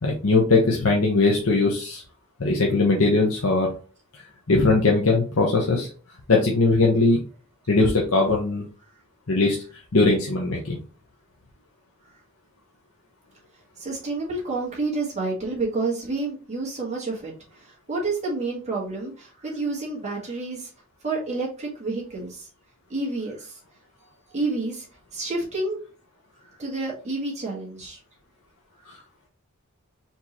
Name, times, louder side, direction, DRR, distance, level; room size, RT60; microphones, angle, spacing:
voice 1, 0.0-2.0 2.4-3.7 4.5-5.9 6.3-7.2 7.7-8.6 9.3-9.6 9.9-10.8, left 3 dB, 70° left, -1 dB, 0.9 m, -20 dB
voice 2, 13.8-20.7 21.0-22.5 22.9-23.6 24.3-24.9 25.1-25.8 26.4-28.0, right 3 dB, 35° right, -4 dB, 1.8 m, -29 dB
4.5 x 3.7 x 3.0 m, 0.38 s
head